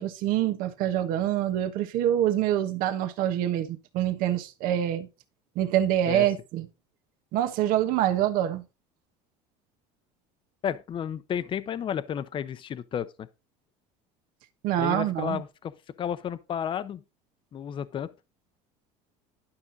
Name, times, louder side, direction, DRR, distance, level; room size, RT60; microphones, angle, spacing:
voice 1, 0.0-5.1 5.5-6.7 7.3-8.6 14.6-15.4, right 12 dB, 65° right, 1.3 m, -26 dB
voice 2, 10.6-13.3 14.8-15.7 16.0-17.0 17.5-18.1, left 9 dB, 35° left, 0.7 m, -32 dB
11.5 x 6.0 x 4.0 m
cardioid pair, 125°, 16 cm